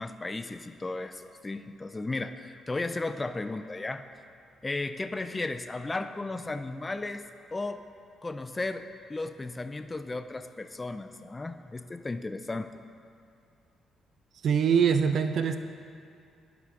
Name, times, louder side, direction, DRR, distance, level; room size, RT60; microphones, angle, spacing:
voice 1, 0.0-4.0 4.6-7.2 7.5-7.8 8.2-12.7, left 2 dB, 20° left, 9 dB, 0.3 m, -35 dB
voice 2, 14.4-15.6, right 7 dB, 60° right, 9 dB, 0.4 m, -23 dB
11.0 x 3.8 x 4.6 m, 2.4 s
cardioid pair, 90°, 0 cm